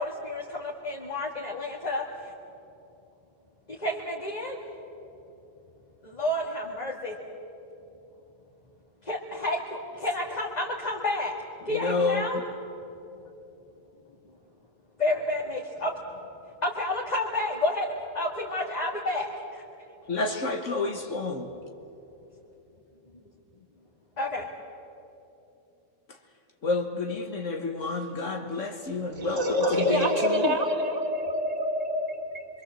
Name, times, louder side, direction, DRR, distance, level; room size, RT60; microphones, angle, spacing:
voice 1, 0.0-2.3 3.7-4.6 6.0-7.1 9.0-11.3 11.7-12.4 15.0-15.9 16.6-19.6 24.2-24.5, left 1 dB, 30° left, -2 dB, 2.0 m, -30 dB
voice 2, 11.7-12.4 20.1-21.5 26.1-26.2 26.6-29.4 29.7-30.5, left 3 dB, 65° left, 4 dB, 1.7 m, -29 dB
voice 3, 29.2-32.5, equal, 30° right, 2 dB, 2.4 m, -26 dB
25.0 x 24.5 x 7.7 m, 3.0 s
omnidirectional pair, 1.4 m